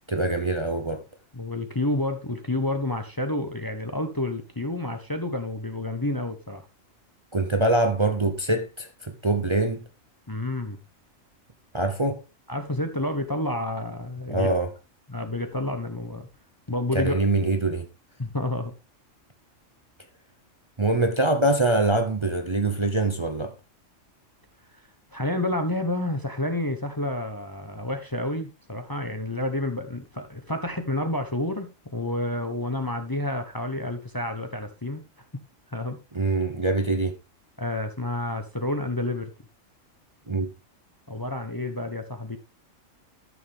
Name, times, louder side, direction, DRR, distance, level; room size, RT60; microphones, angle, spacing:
voice 1, 0.1-1.0 7.3-9.8 11.7-12.2 14.3-14.7 16.9-17.9 20.8-23.5 36.1-37.1 40.3-40.5, right 2 dB, 25° right, 0.9 m, -24 dB
voice 2, 1.3-6.7 10.3-10.8 12.5-14.5 15.1-16.3 16.7-17.1 18.2-18.7 25.1-35.0 35.7-36.0 37.6-39.3 41.1-42.4, left 1 dB, 20° left, 0.9 m, -29 dB
12.5 x 6.8 x 3.5 m
omnidirectional pair, 1.3 m